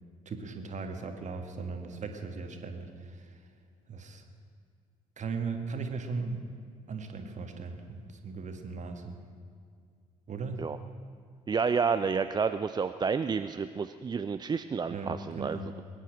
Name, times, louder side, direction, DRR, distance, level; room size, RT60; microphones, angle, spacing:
voice 1, 0.3-3.4 3.9-4.2 5.2-6.4 6.9-9.2 10.3-10.7 14.9-15.7, right 4 dB, 40° right, 5 dB, 1.9 m, -38 dB
voice 2, 11.5-15.8, right 5 dB, 20° right, 11 dB, 0.5 m, -30 dB
22.5 x 10.0 x 6.4 m, 2.1 s
figure-of-eight pair, 50°, 19 cm